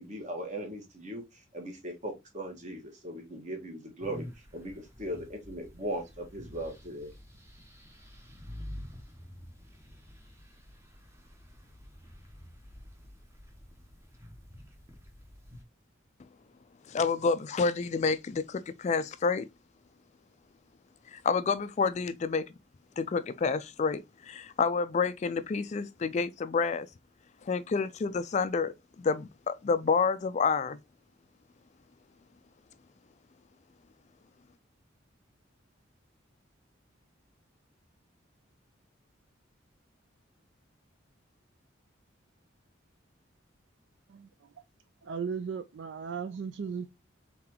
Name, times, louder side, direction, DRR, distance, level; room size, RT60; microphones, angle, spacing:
voice 1, 0.0-4.3 4.5-7.1, right 1 dB, 40° right, 1.4 m, -38 dB
sound 1, 4.0-15.6, left 1 dB, 15° right, 0.8 m, -49 dB
voice 2, 16.9-19.5 21.1-22.5 23.0-26.9 27.4-30.8, left 5 dB, 35° left, 0.3 m, -29 dB
voice 3, 44.1-44.5 45.0-47.0, right 6 dB, 60° right, 0.4 m, -37 dB
3.9 x 3.7 x 2.9 m
head